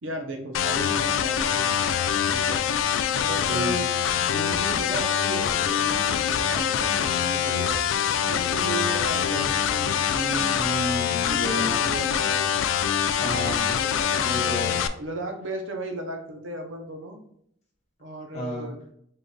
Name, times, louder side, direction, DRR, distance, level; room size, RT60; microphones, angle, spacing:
voice 1, 0.0-1.8 2.3-2.6 3.2-3.9 4.2-7.8 8.3-10.5 11.3-12.5 13.7-14.3 15.0-17.2 18.0-18.8, right 1 dB, 85° right, 4 dB, 0.7 m, -35 dB
sound 1, 0.5-14.9, left 8 dB, 85° left, 0.3 m, -24 dB
voice 2, 3.5-3.8 10.5-11.7 13.1-13.7 14.2-14.7 18.3-18.7, equal, 35° left, -2 dB, 1.2 m, -31 dB
3.8 x 2.3 x 3.8 m, 0.70 s
head